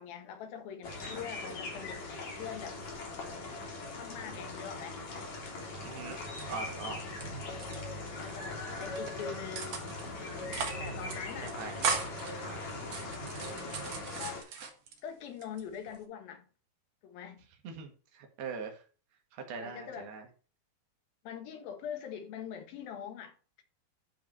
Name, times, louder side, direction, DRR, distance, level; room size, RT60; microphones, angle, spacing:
voice 1, 0.0-2.8 4.0-5.1 7.5-10.0 10.8-11.6 14.2-14.4 15.0-16.5 17.0-17.4 19.6-20.1 21.2-23.6, left 8 dB, 70° left, 3.1 m, -43 dB
sound 1, 0.8-14.4, left 2 dB, 50° left, 4.0 m, -40 dB
voice 2, 5.8-7.0 11.4-11.9 12.4-12.6 17.6-18.8 19.3-20.3, right 5 dB, 85° right, 3.9 m, -42 dB
sound 2, 6.2-7.2 7.5-8.5 8.8-9.1 9.6-10.1 10.4-10.8 11.1-11.2 11.5-12.3 12.8-15.0 15.4-16.0, right 5 dB, 55° right, 2.1 m, -37 dB
11.5 x 5.1 x 4.6 m
omnidirectional pair, 4.4 m